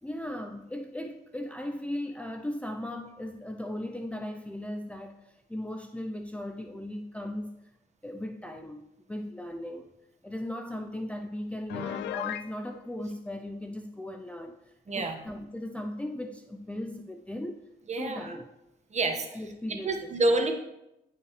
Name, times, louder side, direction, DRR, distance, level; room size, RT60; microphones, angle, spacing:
voice 1, 0.0-7.6 8.0-9.9 10.2-18.6 19.3-20.1, left 1 dB, 5° left, 3 dB, 0.6 m, -37 dB
Piano, 11.7-12.5, left 13 dB, 75° left, 0.4 m, -35 dB
voice 2, 14.9-15.2 17.9-18.3 18.9-19.4 19.7-20.5, right 2 dB, 40° right, 3 dB, 1.6 m, -28 dB
15.5 x 5.6 x 3.3 m, 0.89 s
cardioid pair, 80°, 18 cm